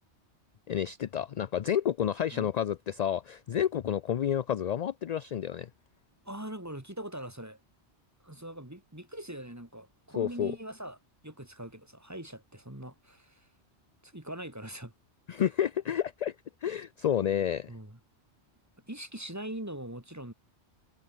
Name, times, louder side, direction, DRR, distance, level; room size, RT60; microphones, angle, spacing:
voice 1, 0.7-5.7 10.2-10.5 15.3-16.3 16.6-17.7, left 9 dB, 55° left, 0.4 m, -30 dB
voice 2, 6.2-7.6 8.2-11.0 11.2-13.5 14.0-14.9 17.7-18.0 18.9-20.3, right 1 dB, 15° right, 2.7 m, -42 dB
omnidirectional pair, 1.1 m